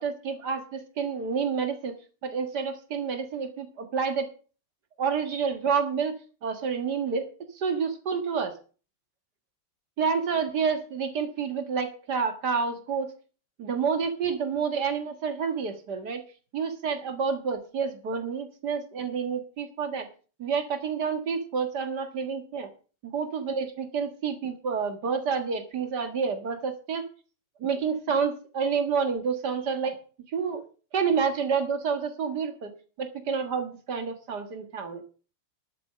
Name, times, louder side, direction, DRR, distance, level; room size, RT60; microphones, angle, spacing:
voice 1, 0.0-2.0 2.2-4.3 5.0-6.1 6.4-7.3 7.5-8.5 10.0-13.1 13.6-16.2 16.5-20.1 20.4-22.7 23.1-27.0 27.6-30.0 30.3-30.6 30.9-35.0, right 6 dB, 50° right, 6 dB, 2.1 m, -29 dB
11.5 x 8.3 x 6.6 m, 0.38 s
omnidirectional pair, 2.4 m